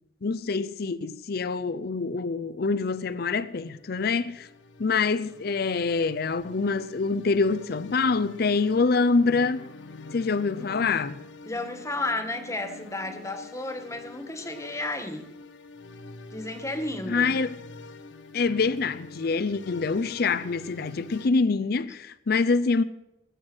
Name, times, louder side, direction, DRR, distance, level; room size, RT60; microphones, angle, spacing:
voice 1, 0.2-4.5 4.8-9.6 10.1-11.2 17.1-17.5 18.3-22.8, left 4 dB, 60° left, 0.6 m, -25 dB
sound 1, 2.8-21.3, left 3 dB, 90° left, 1.2 m, -46 dB
voice 2, 10.5-11.0 11.5-15.3 16.3-17.4, left 2 dB, 15° left, 1.7 m, -33 dB
20.5 x 9.2 x 6.2 m
head